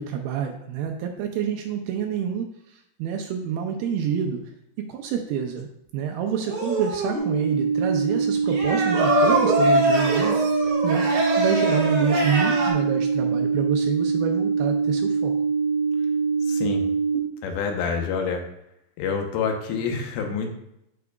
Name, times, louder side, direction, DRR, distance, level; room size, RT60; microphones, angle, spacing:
voice 1, 0.0-4.5 4.9-11.1 11.4-15.3, right 8 dB, 80° right, 3 dB, 2.3 m, -28 dB
sound 1, 6.4-7.2 8.5-12.7, equal, 60° right, 1.4 m, -23 dB
sound 2, 7.1-17.2, right 5 dB, 40° right, 1.0 m, -24 dB
voice 2, 16.5-16.8 17.4-18.4 19.0-20.5, left 5 dB, 85° left, 3 dB, 3.1 m, -27 dB
13.0 x 4.9 x 2.3 m, 0.81 s
omnidirectional pair, 4.8 m